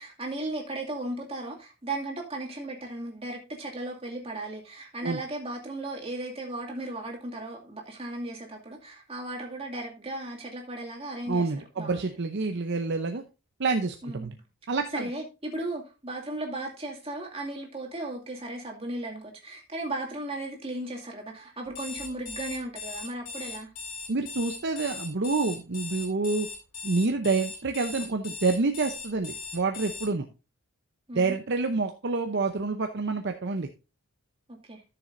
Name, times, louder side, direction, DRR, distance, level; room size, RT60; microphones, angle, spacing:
voice 1, 0.0-11.5 11.8-12.1 14.0-14.4 14.9-23.7 31.1-31.4 34.5-34.8, right 2 dB, 25° right, 0 dB, 2.3 m, -36 dB
voice 2, 11.3-13.2 13.6-14.3 14.7-15.1 24.1-26.5 26.8-30.3 31.1-33.7, right 3 dB, 50° right, 5 dB, 0.7 m, -28 dB
Alarm, 21.7-30.1, left 4 dB, 65° left, 3.0 m, -39 dB
13.0 x 6.9 x 2.6 m, 0.29 s
head